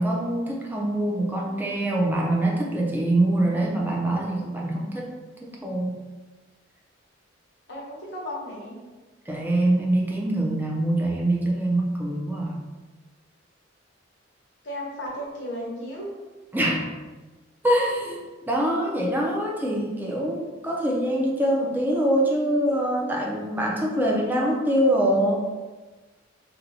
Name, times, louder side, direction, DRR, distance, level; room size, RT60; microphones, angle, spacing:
voice 1, 0.0-5.1 5.6-6.0 9.3-12.6 16.5-17.0 17.6-25.4, right 1 dB, 10° right, -2 dB, 0.5 m, -24 dB
voice 2, 7.7-8.8 14.6-16.1, equal, 60° left, -3 dB, 0.9 m, -34 dB
2.8 x 2.2 x 4.0 m, 1.2 s
head